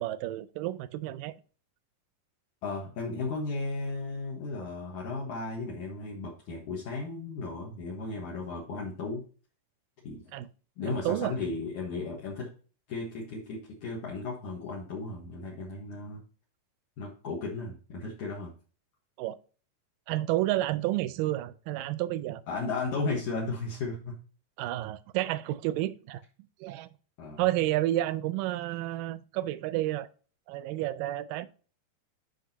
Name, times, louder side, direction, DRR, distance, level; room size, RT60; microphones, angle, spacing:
voice 1, 0.0-1.3 10.3-10.5 10.9-11.3 19.2-19.4 20.1-22.4 24.6-26.2 26.6-26.9 27.4-30.1 30.5-31.5, right 15 dB, 80° right, 2.2 m, -30 dB
voice 2, 2.6-9.2 10.0-10.2 10.8-12.5 12.9-16.2 17.0-18.5 22.5-24.2 27.2-27.4, left 3 dB, 65° left, 2.8 m, -35 dB
10.5 x 5.0 x 2.9 m
omnidirectional pair, 4.0 m